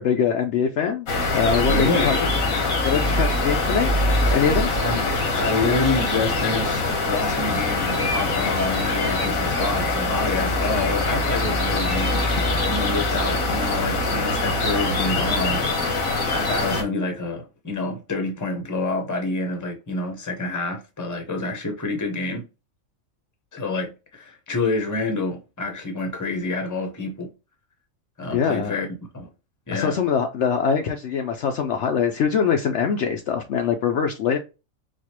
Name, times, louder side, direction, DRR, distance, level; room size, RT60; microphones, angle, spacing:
voice 1, 0.0-2.2 2.8-3.9 4.3-4.7 28.3-28.8 29.7-34.4, left 7 dB, 65° left, 0.8 m, -23 dB
sound 1, 1.1-16.8, left 2 dB, 90° left, 1.5 m, -23 dB
voice 2, 1.7-2.3 4.8-15.6 16.3-22.5 23.5-27.3 28.2-28.9 29.1-29.3 29.7-30.0, left 3 dB, 15° left, 0.8 m, -27 dB
4.2 x 2.4 x 2.9 m
omnidirectional pair, 1.4 m